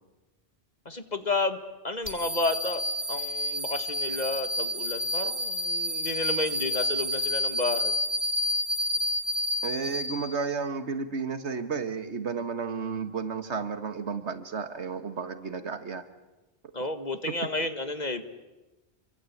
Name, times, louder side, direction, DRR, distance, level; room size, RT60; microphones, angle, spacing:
voice 1, 0.9-1.6 1.8-2.8 3.1-7.9 16.7-18.2, left 2 dB, 40° left, 9 dB, 1.8 m, -31 dB
sound 1, 2.1-10.5, equal, 10° left, 2.8 m, -29 dB
voice 2, 9.6-16.0, right 5 dB, 75° right, 10 dB, 1.8 m, -32 dB
28.5 x 23.5 x 8.6 m, 1.1 s
omnidirectional pair, 1.2 m